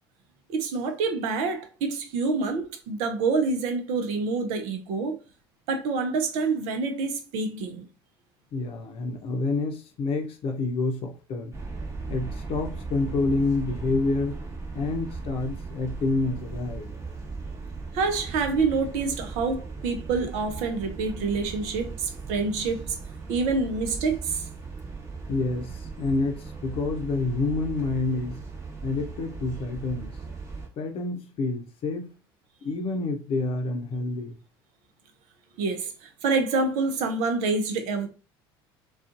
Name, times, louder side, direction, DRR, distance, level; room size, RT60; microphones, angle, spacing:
voice 1, 0.5-5.1 5.7-7.8 17.9-23.0 23.3-24.5 35.6-38.1, right 4 dB, 65° right, 0.6 m, -27 dB
voice 2, 8.5-11.6 12.1-14.4 14.7-16.9 25.3-28.4 28.8-30.2 30.8-32.2 32.6-34.4, left 3 dB, 50° left, 0.7 m, -28 dB
sound 1, 11.5-30.7, right 4 dB, 25° right, 1.0 m, -38 dB
2.5 x 2.3 x 2.4 m
hypercardioid pair, 70°, 13 cm